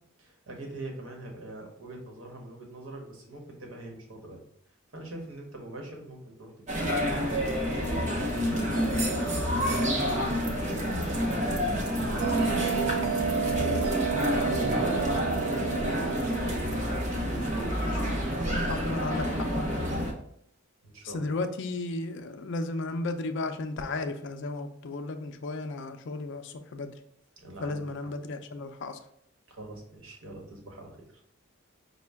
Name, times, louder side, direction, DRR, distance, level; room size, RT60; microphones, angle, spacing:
voice 1, 0.2-4.4 4.9-12.9 13.4-16.0 20.8-21.3 27.4-28.1 29.5-31.1, right 2 dB, 70° right, 1 dB, 1.0 m, -43 dB
sound 1, 6.7-20.1, equal, 35° right, 0.7 m, -28 dB
Bell, 12.2-17.3, right 7 dB, 90° right, 0.4 m, -31 dB
voice 2, 17.8-19.9 21.1-26.9 27.6-29.0, left 2 dB, 60° left, 7 dB, 0.4 m, -34 dB
5.3 x 2.2 x 3.4 m, 0.71 s
head